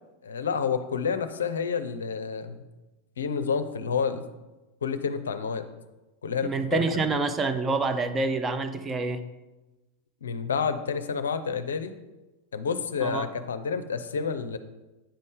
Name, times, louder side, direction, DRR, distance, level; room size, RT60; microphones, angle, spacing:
voice 1, 0.2-2.6 3.2-4.2 4.8-5.7 6.2-7.1 10.2-11.9 12.5-14.6, left 6 dB, 65° left, 10 dB, 0.5 m, -29 dB
voice 2, 6.4-9.2 13.0-13.3, right 3 dB, 20° right, 9 dB, 0.6 m, -27 dB
8.8 x 5.2 x 3.7 m, 1.1 s
figure-of-eight pair, 90°, 0 cm